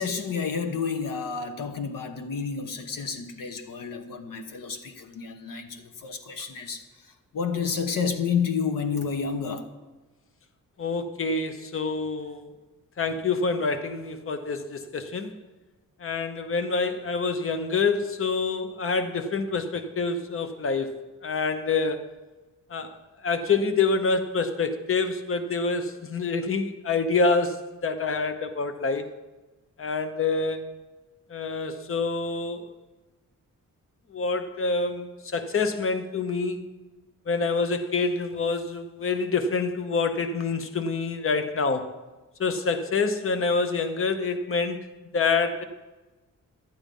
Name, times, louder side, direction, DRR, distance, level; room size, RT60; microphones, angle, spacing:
voice 1, 0.0-6.8 7.3-9.6, left 6 dB, 85° left, 7 dB, 1.2 m, -30 dB
voice 2, 10.8-12.5 13.0-15.3 16.0-20.9 21.2-22.0 22.7-22.9 23.2-27.6 27.8-29.1 29.8-30.7 31.3-32.7 34.1-36.6 37.3-41.9 42.4-44.8 45.1-45.6, left 4 dB, 40° left, 9 dB, 0.9 m, -26 dB
11.5 x 8.9 x 5.4 m, 1.2 s
wide cardioid pair, 130°, 33 cm